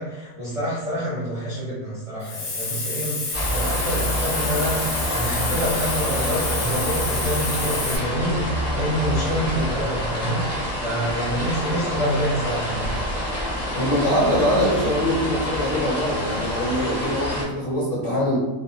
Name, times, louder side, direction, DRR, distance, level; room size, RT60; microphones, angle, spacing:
voice 1, 0.0-12.9, equal, 40° right, -8 dB, 0.5 m, -27 dB
Hiss, 2.2-8.0, left 3 dB, 80° left, 0.4 m, -29 dB
sound 1, 3.3-17.4, equal, 20° left, 0.4 m, -27 dB
voice 2, 13.7-18.4, equal, 55° left, -8 dB, 0.7 m, -23 dB
2.3 x 2.1 x 2.8 m, 1.1 s
omnidirectional pair, 1.4 m